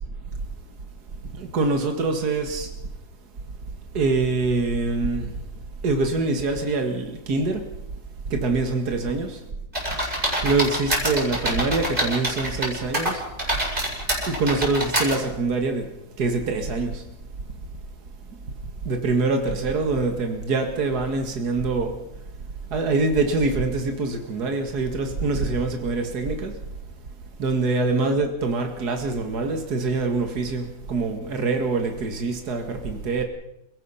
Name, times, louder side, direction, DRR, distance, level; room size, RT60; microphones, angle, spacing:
voice 1, 1.4-2.7 3.9-5.3 5.8-7.7 8.3-9.4 10.4-13.2 14.3-15.9 16.2-17.0 18.9-21.9 22.7-26.5 27.4-33.2, right 3 dB, 70° right, 2.4 m, -24 dB
sound 1, 9.7-12.7 12.9-15.1, equal, 30° right, 7.4 m, -25 dB
28.5 x 17.5 x 5.7 m
omnidirectional pair, 1.8 m